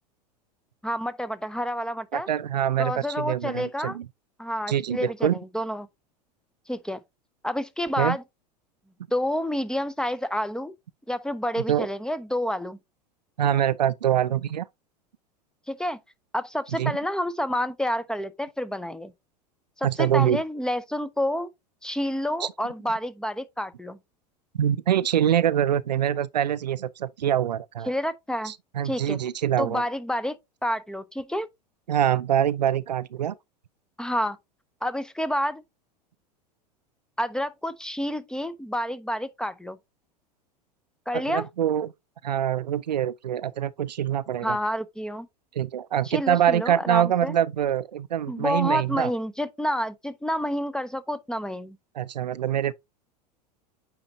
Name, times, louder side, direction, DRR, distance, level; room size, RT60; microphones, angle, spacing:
voice 1, 0.8-2.3 2.8-4.0 4.4-5.9 6.7-7.0 7.4-8.2 9.1-10.7 11.1-12.8 15.7-16.0 16.3-19.1 19.8-21.5 21.8-24.0 27.9-28.5 28.8-29.2 29.6-31.5 34.0-34.4 34.8-35.6 37.2-39.8 41.1-41.5 44.4-45.3 46.0-47.3 48.3-51.8, equal, 5° left, 0.5 m, -29 dB
voice 2, 2.1-4.0 4.7-5.4 8.0-8.2 11.7-11.9 13.4-14.7 16.8-16.9 19.8-20.4 22.4-22.5 24.5-27.9 28.5-29.8 31.9-33.3 41.1-41.9 42.2-44.6 45.6-49.1 52.0-52.7, right 10 dB, 85° right, 0.4 m, -24 dB
8.8 x 4.2 x 2.7 m
figure-of-eight pair, 85°, 21 cm